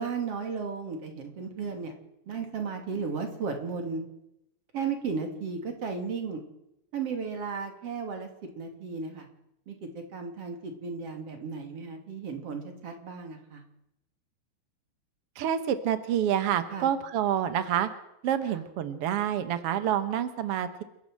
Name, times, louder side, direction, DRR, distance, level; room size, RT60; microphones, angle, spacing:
voice 1, 0.0-1.9 2.3-4.1 4.7-6.4 6.9-8.3 8.6-9.3 9.7-13.6 16.7-16.9 18.4-18.6, right 5 dB, 40° right, 4 dB, 3.4 m, -34 dB
voice 2, 15.3-17.9 18.2-20.8, right 10 dB, 85° right, 10 dB, 1.3 m, -28 dB
29.0 x 12.0 x 7.8 m, 0.85 s
omnidirectional pair, 4.5 m